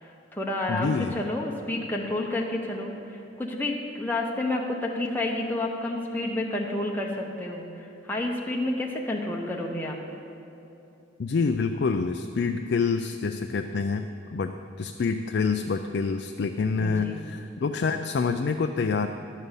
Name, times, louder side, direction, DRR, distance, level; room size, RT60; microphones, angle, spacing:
voice 1, 0.0-10.0 16.8-17.2, left 2 dB, 10° left, -2 dB, 0.7 m, -30 dB
voice 2, 0.7-1.2 11.2-19.1, left 4 dB, 55° left, 6 dB, 0.3 m, -27 dB
11.0 x 5.3 x 8.1 m, 2.9 s
head